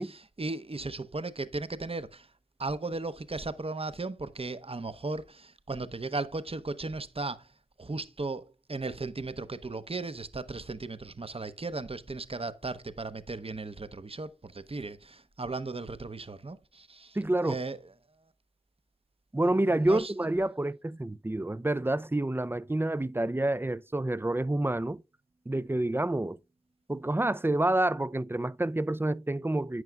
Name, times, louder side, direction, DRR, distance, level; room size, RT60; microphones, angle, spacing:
voice 1, 0.0-2.3 2.6-7.5 7.8-17.8 19.4-20.1, right 3 dB, 45° right, 0.8 m, -36 dB
voice 2, 17.2-17.6 19.3-25.0 25.5-26.4 26.9-29.8, right 1 dB, 15° right, 0.4 m, -28 dB
11.0 x 9.0 x 2.3 m
wide cardioid pair, 50°, 14 cm